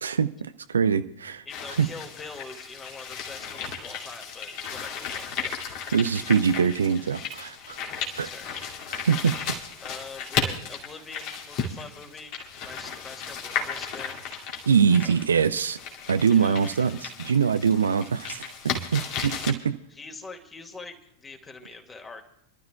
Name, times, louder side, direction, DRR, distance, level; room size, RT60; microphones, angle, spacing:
voice 1, 0.0-1.4 1.8-1.9 5.9-7.8 8.2-8.3 8.9-9.3 14.7-15.8 16.1-18.4 18.9-19.8, right 6 dB, 70° right, 0.5 m, -23 dB
sound 1, 1.5-19.5, left 6 dB, 45° left, 2.4 m, -35 dB
voice 2, 1.5-5.6 8.2-8.5 9.8-12.4 12.6-14.2 15.0-15.2 16.3-16.7 19.9-22.2, left 3 dB, 15° left, 2.2 m, -43 dB
30.0 x 12.5 x 2.3 m
figure-of-eight pair, 90°, 0 cm